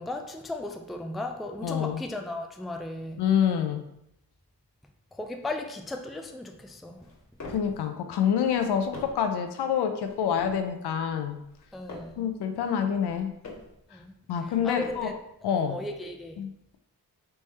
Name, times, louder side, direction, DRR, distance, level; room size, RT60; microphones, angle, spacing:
voice 1, 0.0-3.2 5.1-7.1 11.7-12.3 13.9-14.1 14.6-15.1 15.5-16.4, left 2 dB, ahead, 4 dB, 0.4 m, -36 dB
voice 2, 1.6-2.0 3.2-3.8 7.5-11.4 12.2-13.3 14.3-15.1 15.4-15.8 16.4-16.8, left 8 dB, 85° left, 7 dB, 0.6 m, -27 dB
sound 1, 6.9-7.8 8.4-9.3 10.0-10.7 11.4-12.2 12.9-13.8 14.4-15.2, left 2 dB, 45° left, 1.5 m, -45 dB
3.4 x 3.3 x 4.1 m, 0.79 s
cardioid pair, 70°, 39 cm